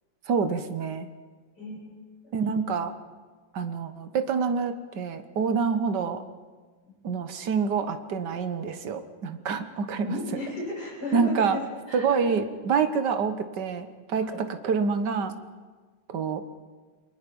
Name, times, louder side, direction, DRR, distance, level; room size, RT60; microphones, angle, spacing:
voice 1, 0.3-1.1 2.3-2.9 3.5-6.2 7.0-10.1 11.1-11.6 11.9-15.3 16.1-16.4, right 5 dB, 65° right, 9 dB, 1.8 m, -27 dB
voice 2, 2.2-2.8 10.0-11.6 11.9-12.3 14.2-14.4, left 2 dB, 60° left, -4 dB, 8.6 m, -34 dB
29.0 x 22.0 x 5.4 m, 1.4 s
omnidirectional pair, 2.0 m